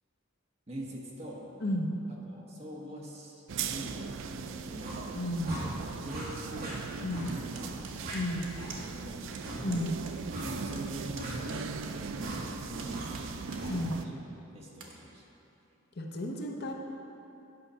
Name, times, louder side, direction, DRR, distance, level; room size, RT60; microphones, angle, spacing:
voice 1, 0.7-1.5 2.1-5.0 5.5-5.7 6.0-6.8 7.2-7.8 8.9-9.3 10.4-13.4 13.7-14.2 14.5-15.2, right 1 dB, 30° right, -3 dB, 1.3 m, -44 dB
sound 1, 3.5-14.1, right 5 dB, 65° right, 0.4 m, -39 dB
sound 2, 4.8-5.0 5.4-5.6 6.1-6.2 6.6-6.7 7.1-7.3 7.5-7.7 8.0-8.2 8.5-8.7 9.4-9.6 10.3-10.5 11.2-11.3 12.2-12.4 12.9-13.1 13.5-13.7, equal, 50° right, 2.2 m, -41 dB
voice 2, 5.2-5.6 7.0-7.4 8.1-8.4 9.6-10.0 13.7-13.9 16.0-16.7, left 1 dB, 50° left, 1 dB, 0.8 m, -32 dB
sound 3, 7.3-9.0 9.3-9.4 9.7-10.1 10.4-12.4 12.8-13.7 14.1-14.2 14.7-14.9, right 5 dB, 90° right, 1.2 m, -48 dB
9.5 x 5.6 x 5.6 m, 2.9 s
head